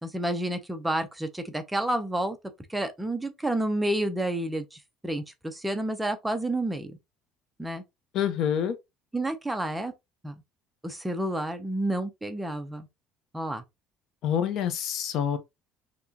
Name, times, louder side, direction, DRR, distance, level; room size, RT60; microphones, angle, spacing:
voice 1, 0.0-2.4 2.7-7.0 7.6-7.8 9.1-9.9 10.2-10.3 10.8-12.9 13.3-13.6, right 1 dB, 5° right, 0.7 m, -30 dB
voice 2, 8.1-8.8 14.2-15.4, left 9 dB, 55° left, 0.8 m, -27 dB
5.9 x 3.0 x 2.8 m
cardioid pair, 145°, 0 cm